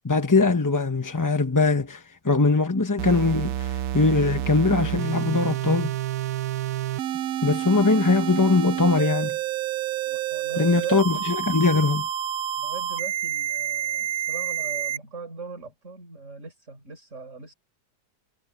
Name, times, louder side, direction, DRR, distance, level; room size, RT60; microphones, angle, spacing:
voice 1, 0.0-5.9 7.4-9.4 10.6-12.1, left 3 dB, 20° left, 0.6 m, -21 dB
sound 1, 3.0-15.0, right 11 dB, 65° right, 1.0 m, -29 dB
voice 2, 10.1-11.3 12.6-17.5, right 4 dB, 45° right, 5.0 m, -40 dB
omnidirectional pair, 1.7 m